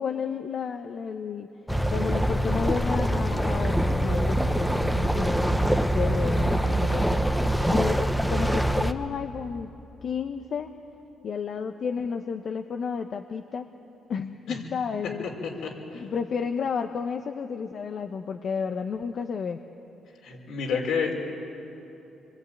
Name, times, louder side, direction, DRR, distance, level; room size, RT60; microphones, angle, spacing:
voice 1, 0.0-1.5 1.9-7.2 7.7-9.7 10.0-10.7 11.2-13.7 14.1-15.3 15.9-19.6, left 6 dB, 55° left, 6 dB, 1.0 m, -31 dB
sound 1, 1.7-8.9, right 1 dB, ahead, 1.2 m, -24 dB
voice 2, 15.6-16.0 20.2-21.3, left 5 dB, 80° left, 0 dB, 5.5 m, -29 dB
26.5 x 23.0 x 9.2 m, 3.0 s
cardioid pair, 90°, 0 cm